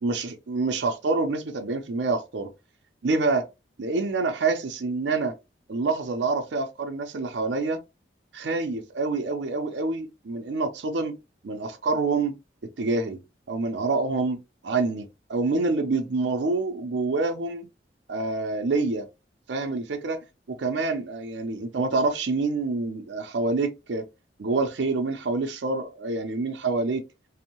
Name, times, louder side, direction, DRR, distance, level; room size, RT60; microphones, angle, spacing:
voice 1, 0.0-2.5 3.0-3.5 3.8-5.3 5.7-7.8 8.3-11.2 11.4-12.4 12.8-13.2 13.5-14.4 14.6-17.6 18.1-19.1 19.5-24.1 24.4-27.0, right 3 dB, 80° right, 0.5 m, -27 dB
2.6 x 2.0 x 2.9 m
head